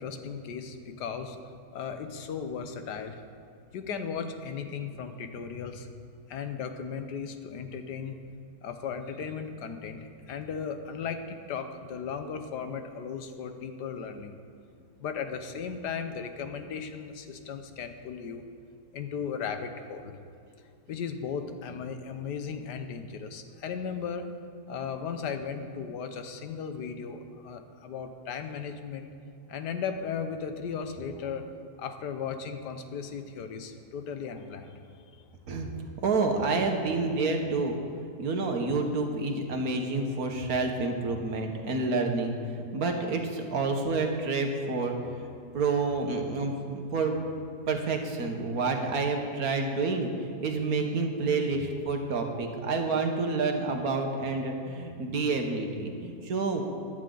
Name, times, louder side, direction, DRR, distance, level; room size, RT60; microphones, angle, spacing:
voice 1, 0.0-1.4 1.7-3.2 3.7-8.2 8.6-14.3 15.0-18.4 18.9-20.2 20.9-24.3 24.7-29.1 29.5-31.5 31.8-34.8 35.1-35.2, left 6 dB, 85° left, 8 dB, 1.4 m, -36 dB
voice 2, 36.0-37.8 38.2-47.1 47.7-56.6, right 3 dB, 65° right, 3 dB, 1.6 m, -29 dB
15.0 x 11.0 x 3.9 m, 2.4 s
omnidirectional pair, 1.8 m